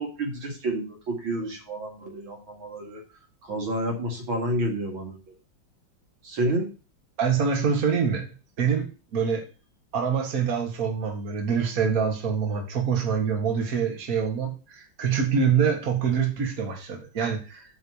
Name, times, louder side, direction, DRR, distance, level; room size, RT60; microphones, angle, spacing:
voice 1, 0.0-3.0 3.5-5.1 6.2-6.7, right 1 dB, 80° right, 2 dB, 2.9 m, -29 dB
voice 2, 7.2-8.3 8.6-9.4 9.9-17.6, right 6 dB, 45° right, 2 dB, 1.9 m, -25 dB
7.7 x 5.1 x 6.3 m, 0.34 s
omnidirectional pair, 2.2 m